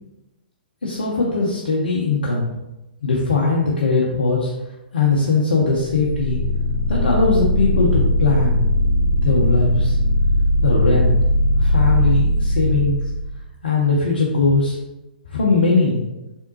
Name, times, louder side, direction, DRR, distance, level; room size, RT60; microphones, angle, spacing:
voice 1, 0.8-2.5 3.0-4.5 4.9-6.4 6.9-8.6 9.2-10.0 10.6-11.1 11.6-13.0 13.6-14.8 15.3-16.0, left 3 dB, 70° left, -3 dB, 0.7 m, -20 dB
sound 1, 5.8-13.4, left 1 dB, 75° right, 0.8 m, -19 dB
3.6 x 3.5 x 2.7 m, 0.99 s
figure-of-eight pair, 120°, 5 cm